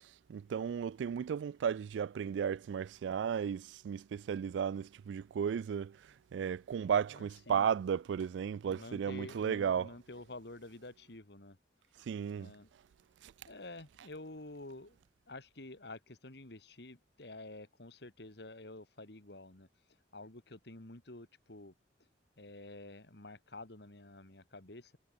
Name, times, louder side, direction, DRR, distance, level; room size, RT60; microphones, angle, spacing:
voice 1, 0.0-9.9 12.0-12.5 13.2-13.3, right 7 dB, 80° right, 0.3 m, -34 dB
voice 2, 7.1-7.7 8.7-11.6 12.4-12.7 13.5-15.0 15.3-19.7 20.1-21.7 22.4-25.0, left 2 dB, 65° left, 2.4 m, -49 dB
head